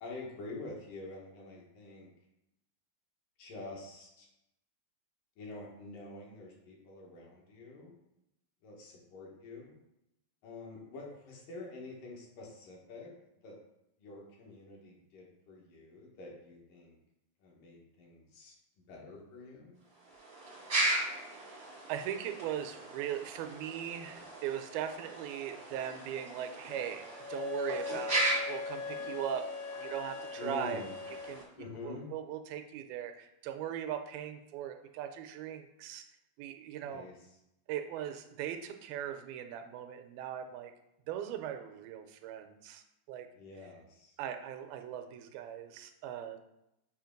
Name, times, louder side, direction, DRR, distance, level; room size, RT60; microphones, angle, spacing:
voice 1, 0.0-2.1 3.4-4.3 5.4-8.0 8.6-9.8 10.4-13.1 13.4-13.6 14.0-17.0 17.4-18.6 18.9-19.8 30.4-30.9 31.6-32.1 36.7-37.3 43.3-44.2, left 2 dB, 70° left, -2 dB, 2.8 m, -47 dB
sound 1, 19.9-31.4, right 2 dB, 55° right, 0.6 m, -38 dB
voice 2, 21.3-29.5 29.8-30.8 31.3-36.1 36.4-37.1 37.7-40.7 41.1-43.3 44.2-46.4, right 10 dB, 90° right, 7 dB, 2.5 m, -39 dB
Wind instrument woodwind instrument, 26.7-31.3, left 5 dB, 90° left, 4.1 m, -40 dB
7.4 x 2.8 x 5.1 m, 0.85 s
omnidirectional pair, 4.2 m